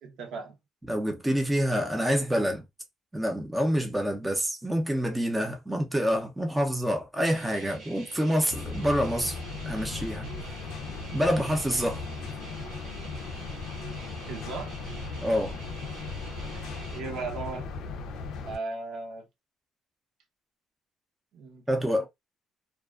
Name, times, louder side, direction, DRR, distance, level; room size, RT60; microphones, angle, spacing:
voice 1, 0.0-0.5 14.3-14.8 16.8-17.7 18.4-19.3 21.3-22.1, right 3 dB, 70° right, 0.7 m, -37 dB
voice 2, 0.9-2.6 3.1-9.4 9.7-10.3 11.1-12.0 15.2-15.6 21.7-22.1, equal, 5° right, 0.5 m, -27 dB
sound 1, 7.2-17.0, right 3 dB, 90° right, 1.2 m, -46 dB
sound 2, 8.5-18.6, left 4 dB, 80° left, 0.4 m, -37 dB
2.3 x 2.3 x 2.3 m
cardioid pair, 150°, 0 cm